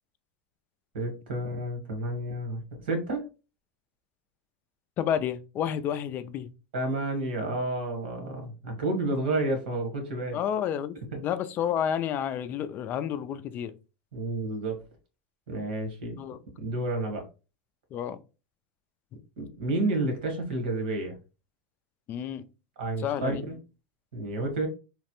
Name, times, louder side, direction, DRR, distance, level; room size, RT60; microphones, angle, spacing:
voice 1, 0.9-3.2 6.7-10.4 11.1-11.2 14.1-14.8 15.5-16.1 16.6-17.2 19.4-21.1 22.8-23.6 24.1-24.7, right 2 dB, 85° right, 1.3 m, -30 dB
voice 2, 5.0-6.5 10.3-13.8 16.0-16.4 17.9-18.2 22.1-22.4 23.0-23.4, left 9 dB, 40° left, 0.3 m, -30 dB
3.1 x 2.1 x 2.9 m
supercardioid pair, 115°, 5 cm